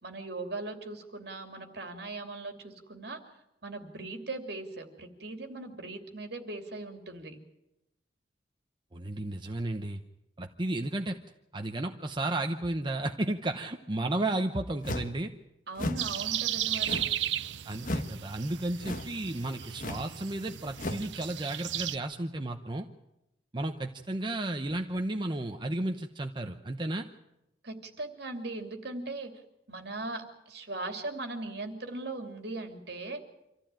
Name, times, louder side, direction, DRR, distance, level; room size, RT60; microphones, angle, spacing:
voice 1, 0.0-3.2 3.6-7.4 15.7-17.1 27.6-29.3 29.7-33.2, right 2 dB, 60° right, 5 dB, 2.9 m, -39 dB
voice 2, 8.9-10.0 10.4-11.2 11.5-15.3 17.6-22.9 23.5-27.1, right 2 dB, 25° right, 5 dB, 0.9 m, -33 dB
sound 1, 14.8-15.2 15.7-16.1 16.8-17.2 17.8-18.2 18.8-19.2 19.8-20.1 20.8-21.1, left 1 dB, 45° left, 1.4 m, -35 dB
sound 2, 16.0-22.0, right 12 dB, 85° right, 0.7 m, -35 dB
26.0 x 14.5 x 9.0 m, 0.91 s
head